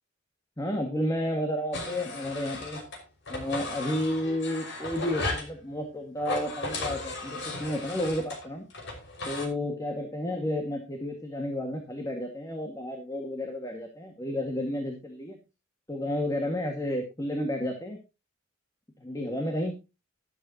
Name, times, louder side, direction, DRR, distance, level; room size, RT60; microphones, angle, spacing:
voice 1, 0.6-2.8 3.3-8.7 9.2-15.4 15.9-18.0 19.0-19.8, left 1 dB, 20° left, 3 dB, 2.0 m, -31 dB
sound 1, 1.7-3.0 3.3-5.5 6.2-9.5, left 2 dB, 60° left, 5.6 m, -35 dB
13.0 x 12.0 x 3.0 m, 0.27 s
head